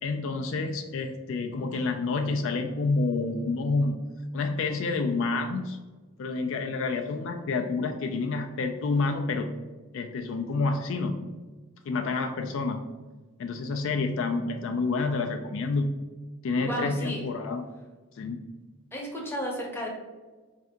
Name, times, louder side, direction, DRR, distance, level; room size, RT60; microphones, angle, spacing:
voice 1, 0.0-4.0 4.3-5.8 6.2-9.5 9.9-11.2 11.8-12.8 13.4-15.9 16.4-17.6 18.2-18.4, left 3 dB, 60° left, 4 dB, 0.3 m, -28 dB
voice 2, 16.6-17.2 18.9-19.9, equal, 10° left, -1 dB, 0.7 m, -32 dB
4.4 x 2.7 x 3.5 m, 1.3 s
head